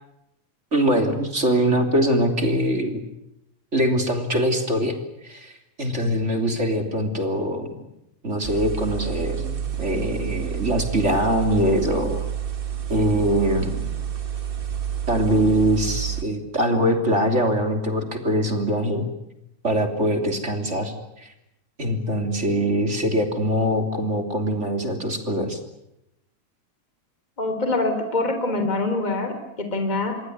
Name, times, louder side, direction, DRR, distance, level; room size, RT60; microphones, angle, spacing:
voice 1, 0.7-3.0 3.7-5.0 5.2-7.9 8.2-12.2 12.9-14.0 15.1-19.1 19.6-21.3 21.8-25.6, equal, 20° right, 6 dB, 3.2 m, -23 dB
sound 1, 8.4-16.2, right 9 dB, 35° right, 0.8 m, -29 dB
voice 2, 27.4-30.2, left 2 dB, 15° left, 7 dB, 3.5 m, -25 dB
27.5 x 22.0 x 9.6 m, 0.84 s
omnidirectional pair, 3.7 m